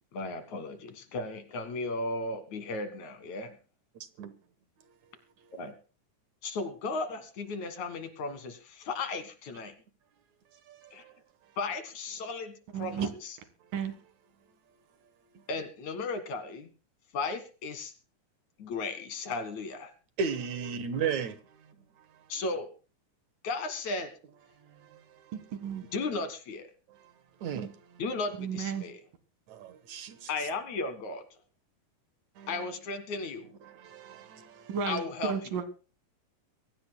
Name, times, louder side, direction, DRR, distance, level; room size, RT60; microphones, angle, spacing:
voice 1, 0.1-3.6 5.5-5.7 6.4-9.7 10.9-11.1 11.6-13.3 15.5-16.7 17.1-17.9 18.6-19.9 22.3-22.7 23.4-24.1 25.9-26.7 28.0-29.0 30.3-31.2 32.5-33.5 34.9-35.3, left 3 dB, 65° left, 3.0 m, -35 dB
voice 2, 10.5-11.1 15.3-15.4 20.2-22.1 24.6-25.3 26.9-27.1 27.4-27.7 29.5-30.5 32.4-32.7 33.6-34.8, right 6 dB, 65° right, 2.4 m, -37 dB
voice 3, 12.7-13.1 13.7-14.0 25.3-25.8 27.4-27.7 28.4-28.9 34.7-35.6, right 6 dB, 85° right, 3.4 m, -33 dB
23.5 x 16.0 x 2.2 m
omnidirectional pair, 3.8 m